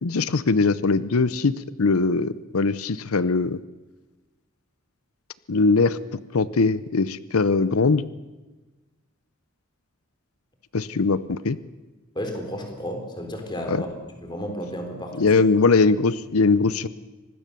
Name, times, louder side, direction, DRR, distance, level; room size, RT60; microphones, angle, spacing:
voice 1, 0.0-3.6 5.5-8.0 10.7-11.6 13.7-13.8 15.2-16.9, left 4 dB, 85° left, 16 dB, 0.7 m, -21 dB
voice 2, 12.2-13.9 14.2-15.4, equal, 20° left, 4 dB, 3.7 m, -32 dB
25.0 x 19.5 x 6.9 m, 1.2 s
head